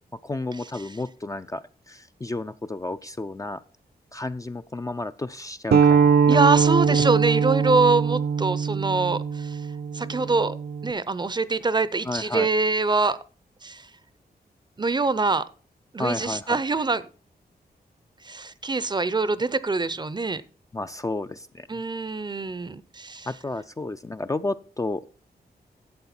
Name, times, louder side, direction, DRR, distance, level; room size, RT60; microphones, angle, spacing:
voice 1, 0.2-3.6 4.1-6.4 6.8-7.0 12.0-12.5 16.0-16.6 20.7-21.8 23.3-25.0, left 2 dB, 20° left, 9 dB, 0.4 m, -32 dB
sound 1, 5.7-10.9, right 6 dB, 75° right, 0.7 m, -21 dB
voice 2, 6.3-9.6 9.9-10.5 10.8-13.2 13.6-13.9 14.8-15.4 15.9-17.0 18.2-20.4 21.7-23.3, right 3 dB, 25° right, 16 dB, 0.6 m, -24 dB
12.0 x 7.7 x 4.3 m, 0.39 s
wide cardioid pair, 120°, 17 cm